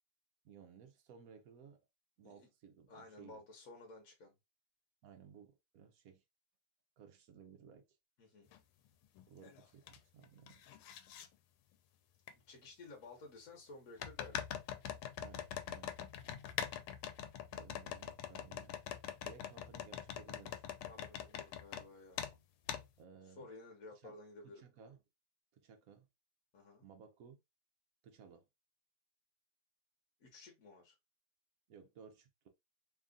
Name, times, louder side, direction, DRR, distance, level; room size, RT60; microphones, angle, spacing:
voice 1, 0.4-1.8 2.2-3.4 5.0-6.2 7.0-7.8 9.3-10.6 15.2-15.9 17.5-18.7 19.2-20.7 21.2-21.3 23.0-23.5 24.0-24.1 24.4-25.0 25.5-26.1 26.8-27.4 28.0-28.4 31.7-32.5, right 7 dB, 70° right, 0.8 m, -58 dB
voice 2, 2.9-4.3 8.2-8.5 12.5-14.4 20.8-22.2 23.3-24.6 26.5-26.8 30.2-30.9, left 3 dB, 50° left, 1.3 m, -54 dB
sound 1, 8.5-8.6 9.2-10.0 10.2-11.3 12.3-12.4 14.0-21.9 22.2-22.3 22.7-22.9, left 9 dB, 90° left, 1.4 m, -43 dB
3.4 x 2.4 x 3.7 m
omnidirectional pair, 2.2 m